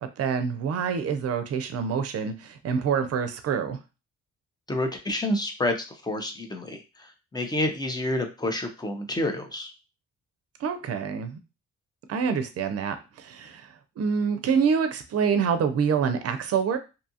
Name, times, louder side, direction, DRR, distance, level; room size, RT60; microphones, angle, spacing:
voice 1, 0.0-3.8 10.6-11.4 12.1-13.7 14.0-16.8, right 6 dB, 55° right, 9 dB, 0.5 m, -26 dB
voice 2, 4.7-9.7, left 1 dB, 15° left, 5 dB, 0.5 m, -29 dB
2.7 x 2.3 x 2.7 m, 0.29 s
cardioid pair, 90°, 30 cm